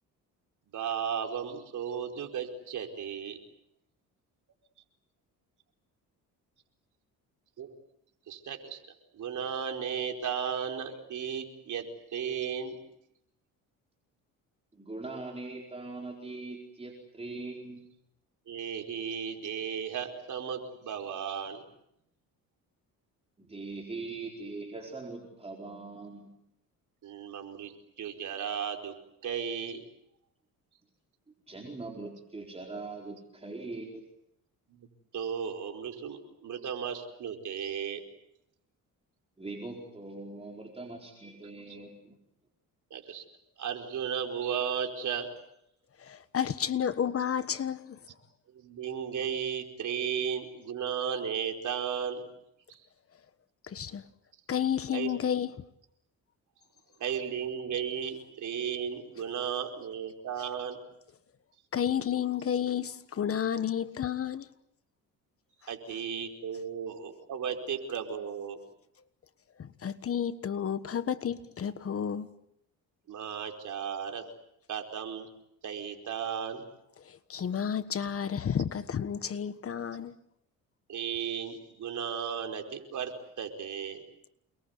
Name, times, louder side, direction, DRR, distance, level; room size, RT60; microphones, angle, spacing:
voice 1, 0.7-3.4 7.6-7.7 8.3-8.8 9.1-11.9 12.1-12.8 18.5-21.6 27.0-27.7 28.0-28.9 29.2-29.8 34.7-34.9 35.1-38.0 42.9-43.2 43.6-45.3 48.5-52.2 52.7-52.8 54.9-55.1 57.0-60.8 65.7-68.6 73.1-74.2 74.7-75.3 75.6-76.6 80.9-84.0, right 7 dB, 60° right, 5.0 m, -35 dB
voice 2, 14.7-17.8 23.4-26.3 31.5-34.0 39.4-42.2, right 3 dB, 20° right, 4.6 m, -41 dB
voice 3, 46.0-48.0 53.7-54.0 54.5-55.5 61.7-64.5 69.6-72.3 77.1-80.1, left 8 dB, 40° left, 1.4 m, -31 dB
29.0 x 21.5 x 8.3 m
cardioid pair, 105°, 34 cm